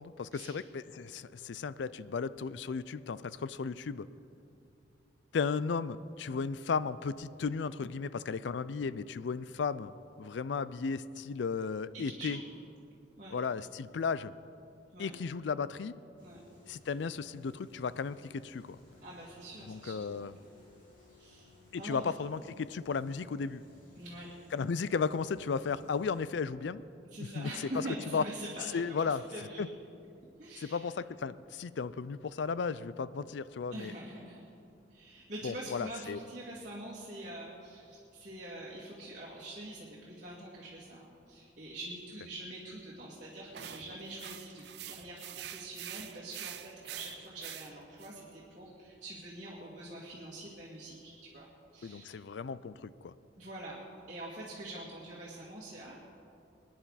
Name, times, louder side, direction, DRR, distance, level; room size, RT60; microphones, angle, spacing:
voice 1, 0.0-4.1 5.3-9.9 10.2-12.4 13.3-14.3 15.0-15.9 16.7-18.8 19.7-20.3 21.7-23.6 24.5-26.8 27.3-27.7 28.1-28.2 28.7-29.2 29.6-29.7 30.6-33.9 35.4-36.2 51.8-53.1, left 5 dB, 70° left, 16 dB, 0.4 m, -35 dB
voice 2, 11.9-12.4 13.2-13.3 14.9-15.1 16.2-16.4 19.0-20.3 21.2-22.1 24.0-24.3 27.1-29.6 30.4-30.9 33.7-34.4 34.9-51.5 51.7-52.2 53.4-53.8 54.1-55.9, right 1 dB, 40° right, -7 dB, 2.2 m, -45 dB
sound 1, 16.2-26.3, left 2 dB, 45° left, 3.2 m, -60 dB
sound 2, 43.5-48.1, right 11 dB, 60° right, 0.5 m, -46 dB
23.0 x 10.0 x 4.1 m, 2.6 s
head